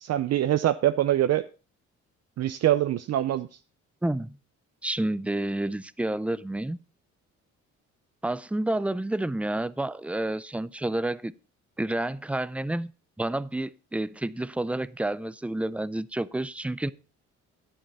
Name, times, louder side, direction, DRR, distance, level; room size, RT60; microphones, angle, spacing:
voice 1, 0.0-1.4 2.4-3.5, right 12 dB, 60° right, 11 dB, 0.6 m, -24 dB
voice 2, 4.0-4.4 4.8-6.8 8.2-11.4 11.8-12.9 13.2-16.9, right 1 dB, 5° right, 19 dB, 0.4 m, -29 dB
10.5 x 8.9 x 4.1 m, 0.34 s
cardioid pair, 90°, 30 cm